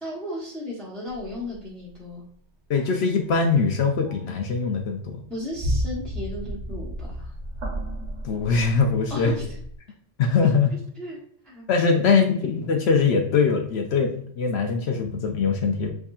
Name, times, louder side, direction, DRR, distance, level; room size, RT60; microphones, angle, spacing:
voice 1, 0.0-2.2 5.3-7.3 9.1-9.4 10.4-10.5 11.0-11.2 11.4-11.6, left 1 dB, ahead, -6 dB, 0.7 m, -35 dB
sound 1, 1.1-1.6 2.7-2.9 3.3-3.7 4.0-4.4 4.8-9.8, equal, 85° right, 1.4 m, -33 dB
voice 2, 2.7-5.2 8.2-9.3 10.2-10.7 11.7-15.9, left 5 dB, 70° left, 4 dB, 0.8 m, -22 dB
4.7 x 2.7 x 2.3 m, 0.62 s
omnidirectional pair, 1.2 m